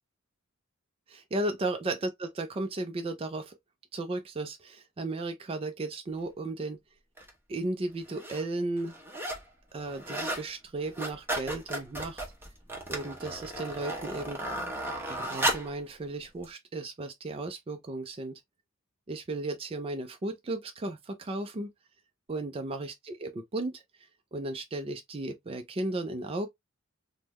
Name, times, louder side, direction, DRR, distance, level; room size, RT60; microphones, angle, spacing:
voice 1, 1.1-3.6 3.9-6.8 7.5-8.9 9.7-12.2 12.9-14.4 15.1-18.4 19.1-21.7 22.3-23.8 24.3-26.5, right 2 dB, 25° right, 0.4 m, -35 dB
sound 1, 7.2-7.3 8.0-8.4 8.8-9.5 9.8-10.5 10.8-15.8 16.4-16.5, right 1 dB, 10° right, 0.8 m, -34 dB
3.6 x 2.1 x 2.9 m
head